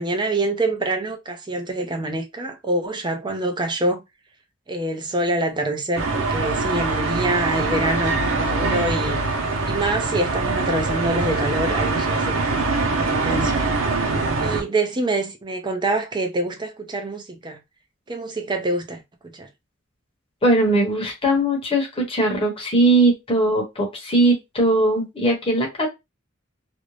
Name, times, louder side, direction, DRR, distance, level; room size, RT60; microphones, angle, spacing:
voice 1, 0.0-4.0 4.7-9.2 9.6-13.6 14.0-17.6 18.1-19.0 19.3-19.5, right 2 dB, 25° right, 0.5 m, -26 dB
sound 1, 6.0-14.6, right 3 dB, 90° right, 0.7 m, -23 dB
voice 2, 20.4-25.9, right 1 dB, 30° left, 1.0 m, -20 dB
2.5 x 2.1 x 3.1 m
head